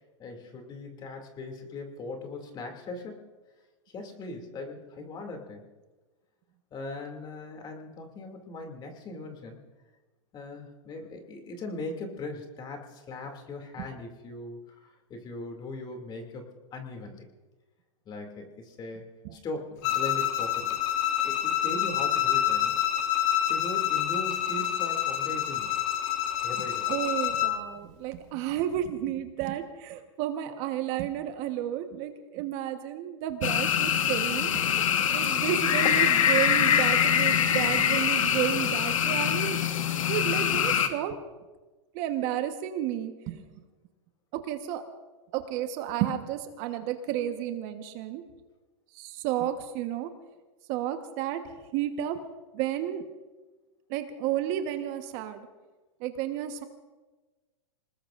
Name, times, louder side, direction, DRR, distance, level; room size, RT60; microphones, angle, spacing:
voice 1, 0.2-3.3 3.9-5.7 6.7-9.6 10.3-17.3 18.1-20.8 21.2-22.8 23.5-25.7 26.4-26.9, left 2 dB, 25° left, 4 dB, 2.6 m, -39 dB
Bowed string instrument, 19.8-27.6, left 11 dB, 45° left, 1.5 m, -27 dB
voice 2, 26.9-34.6 35.1-39.6 40.1-41.2 41.9-43.6 44.3-44.8 45.3-48.2 48.9-50.1 50.7-51.4 51.7-52.2 52.5-53.0 53.9-55.4 56.0-56.6, right 11 dB, 45° right, 7 dB, 1.2 m, -32 dB
sound 1, 33.4-40.9, left 8 dB, 85° left, 1.4 m, -24 dB
27.0 x 19.5 x 2.6 m, 1.3 s
hypercardioid pair, 135°, 17 cm